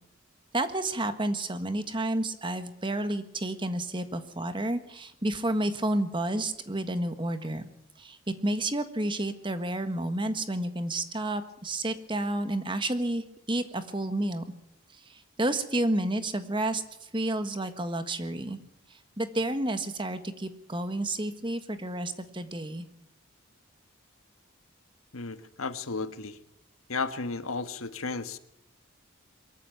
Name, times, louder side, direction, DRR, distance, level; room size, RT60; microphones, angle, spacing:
voice 1, 0.5-7.7 8.0-14.4 15.0-18.6 18.9-22.8, right 1 dB, 25° right, 9 dB, 1.6 m, -30 dB
voice 2, 25.1-26.4 26.9-28.4, left 4 dB, 90° left, 10 dB, 1.5 m, -34 dB
23.0 x 14.0 x 9.1 m, 0.80 s
head